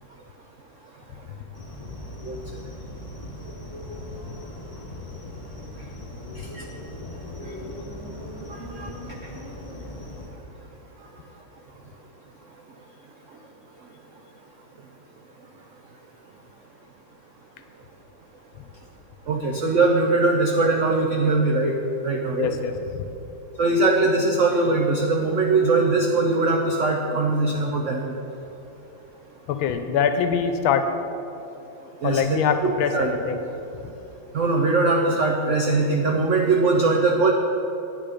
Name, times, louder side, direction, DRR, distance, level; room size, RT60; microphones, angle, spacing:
sound 1, 1.5-10.3, left 1 dB, 15° left, 1.2 m, -38 dB
voice 1, 8.5-8.9 19.3-21.7 22.0-22.5 23.6-28.1 32.0-32.4 32.6-33.1 34.3-37.3, right 3 dB, 75° right, 1 dB, 0.7 m, -21 dB
voice 2, 22.3-23.0 29.5-30.9 32.0-33.4 33.8-33.9, left 7 dB, 80° left, 8 dB, 1.5 m, -24 dB
9.4 x 9.1 x 5.1 m, 2.9 s
omnidirectional pair, 2.2 m